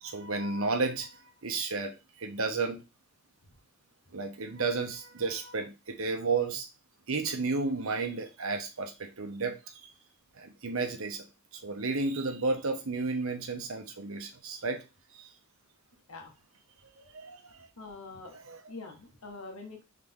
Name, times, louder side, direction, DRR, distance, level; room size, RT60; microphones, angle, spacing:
voice 1, 0.0-2.8 4.1-6.7 7.1-9.9 10.3-11.3 11.5-14.8 15.1-15.3 16.8-17.7 18.3-18.6, right 3 dB, 65° right, 5 dB, 0.9 m, -33 dB
voice 2, 17.8-19.8, left 3 dB, 75° left, 1 dB, 1.5 m, -45 dB
3.9 x 3.7 x 3.6 m, 0.26 s
head